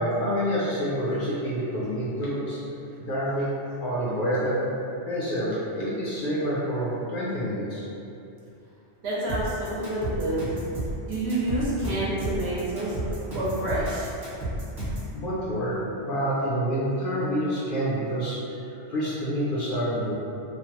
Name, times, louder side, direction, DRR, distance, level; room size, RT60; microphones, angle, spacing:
voice 1, 0.0-2.6 3.0-3.5 3.8-4.8 5.0-7.9 15.1-18.4 18.9-20.1, equal, 60° left, -8 dB, 0.6 m, -27 dB
voice 2, 9.0-10.4 11.1-12.9 13.3-14.1, right 1 dB, 65° right, -8 dB, 0.9 m, -28 dB
sound 1, 9.3-15.1, right 1 dB, 40° right, 1.0 m, -32 dB
3.0 x 2.0 x 2.9 m, 2.7 s
omnidirectional pair, 1.2 m